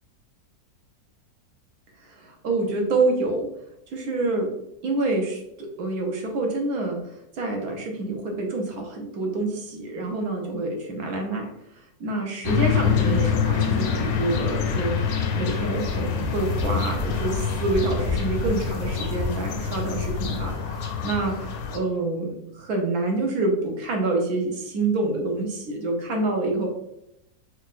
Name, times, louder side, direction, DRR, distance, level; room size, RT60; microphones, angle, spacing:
voice 1, 2.0-3.5 3.9-4.5 4.8-11.5 12.0-26.7, right 2 dB, 65° right, 2 dB, 1.1 m, -27 dB
sound 1, 12.4-21.8, left 7 dB, 80° left, 1.3 m, -26 dB
sound 2, 13.7-20.2, left 2 dB, 55° left, 0.6 m, -37 dB
sound 3, 16.2-16.3 16.6-16.7 16.9-17.0 17.3-17.8 18.0-18.2 18.4-18.5 18.8-18.9 19.2-19.3, right 1 dB, 40° right, 0.8 m, -33 dB
4.6 x 2.4 x 2.5 m, 0.80 s
omnidirectional pair, 1.9 m